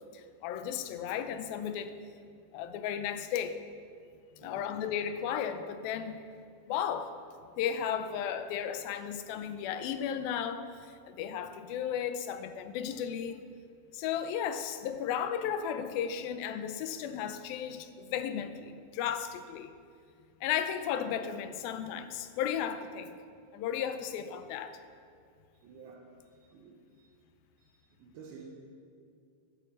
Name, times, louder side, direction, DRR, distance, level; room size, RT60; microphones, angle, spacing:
voice 1, 0.1-1.9 2.5-3.6 4.4-6.2 6.7-7.1 7.6-13.4 13.9-19.7 20.4-23.2 23.5-24.8, left 8 dB, 80° left, 9 dB, 2.5 m, -34 dB
voice 2, 4.4-4.8 25.6-27.2 27.6-28.4, right 5 dB, 80° right, -1 dB, 2.9 m, -53 dB
12.5 x 10.0 x 7.5 m, 2.2 s
omnidirectional pair, 4.3 m